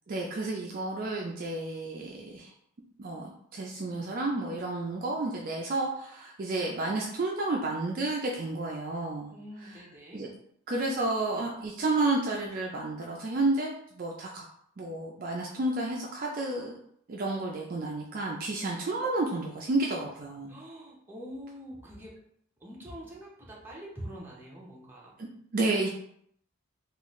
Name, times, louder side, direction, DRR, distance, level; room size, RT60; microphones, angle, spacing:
voice 1, 0.1-2.5 3.0-9.3 9.6-9.8 10.1-10.3 10.7-14.5 14.8-16.7 17.1-20.5 25.2-25.9, right 2 dB, 40° right, -1 dB, 0.3 m, -31 dB
voice 2, 9.3-10.2 18.9-19.0 20.5-22.2 22.6-25.1, equal, 10° right, -4 dB, 0.7 m, -44 dB
3.8 x 2.4 x 3.0 m, 0.70 s
head